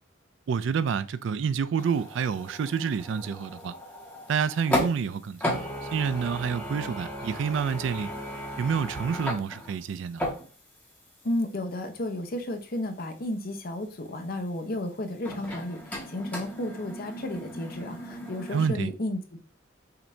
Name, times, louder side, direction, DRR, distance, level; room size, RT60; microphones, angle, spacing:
voice 1, 0.5-3.7 4.3-5.6 5.9-8.1 8.6-10.2 18.5-18.9, right 6 dB, 70° right, 0.3 m, -28 dB
sound 1, 1.8-5.1 5.4-10.9 11.2-11.3 15.2-18.7, left 1 dB, 10° left, 1.2 m, -35 dB
voice 2, 11.2-19.4, left 1 dB, 50° left, 0.7 m, -33 dB
5.8 x 2.6 x 3.2 m
head